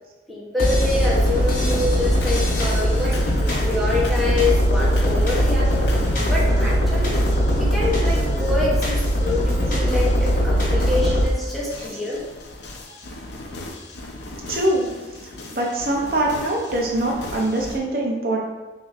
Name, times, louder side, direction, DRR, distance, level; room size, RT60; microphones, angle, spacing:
voice 1, 0.3-3.2 3.6-5.9 6.2-7.2 7.5-12.2, left 2 dB, ahead, -6 dB, 0.9 m, -26 dB
sound 1, 0.6-11.3, equal, 50° left, 0.9 m, -20 dB
sound 2, 1.0-17.8, left 1 dB, 70° left, 0.6 m, -36 dB
voice 2, 14.5-14.9 15.5-18.4, right 1 dB, 55° right, -1 dB, 0.7 m, -23 dB
6.1 x 2.7 x 2.5 m, 1.2 s
head